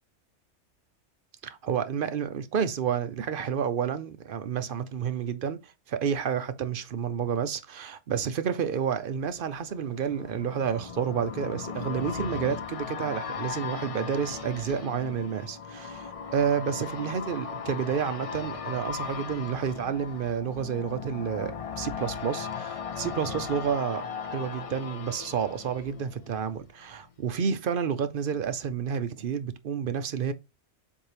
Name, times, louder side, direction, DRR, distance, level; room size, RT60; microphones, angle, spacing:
voice 1, 1.4-30.3, right 7 dB, 55° right, 0.7 m, -30 dB
sound 1, 8.9-26.7 27.0-27.1, left 6 dB, 55° left, 0.4 m, -38 dB
7.3 x 2.7 x 4.9 m
omnidirectional pair, 1.2 m